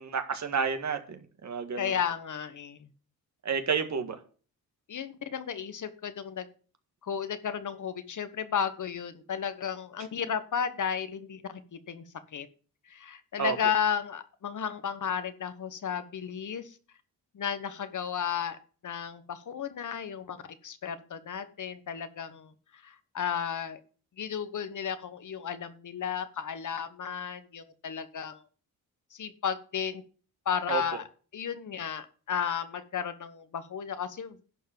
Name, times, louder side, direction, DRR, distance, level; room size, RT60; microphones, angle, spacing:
voice 1, 0.0-1.9 3.4-4.1 13.4-13.6 30.7-30.8, right 6 dB, 50° right, 7 dB, 1.7 m, -30 dB
voice 2, 1.8-2.9 4.9-6.5 7.0-12.0 12.3-12.5 12.9-16.7 17.3-18.6 18.8-20.4 20.6-23.8 24.2-28.4 29.1-30.0 30.4-31.0 31.3-34.6, left 7 dB, 55° left, 12 dB, 1.3 m, -33 dB
11.0 x 4.7 x 7.5 m, 0.39 s
cardioid pair, 100°, 36 cm